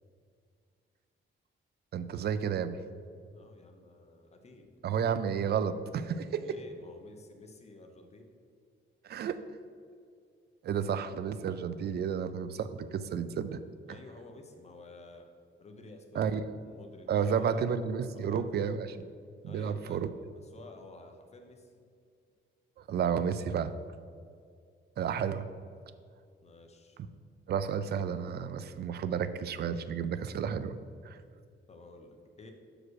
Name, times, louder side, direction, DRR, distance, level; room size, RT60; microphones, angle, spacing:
voice 1, 1.9-2.8 4.8-6.6 9.0-9.5 10.6-13.6 16.1-16.5 17.1-19.0 19.4-20.1 22.8-23.7 25.0-25.5 27.5-30.8 31.0-31.2, right 7 dB, 55° right, 13 dB, 0.4 m, -31 dB
voice 2, 3.3-4.7 6.4-8.3 13.9-15.3 15.6-17.6 18.1-18.6 19.4-20.0 20.3-21.7 26.4-27.0 31.7-32.5, left 2 dB, 30° left, 4 dB, 0.9 m, -52 dB
6.1 x 5.0 x 6.3 m, 2.2 s
cardioid pair, 130°, 20 cm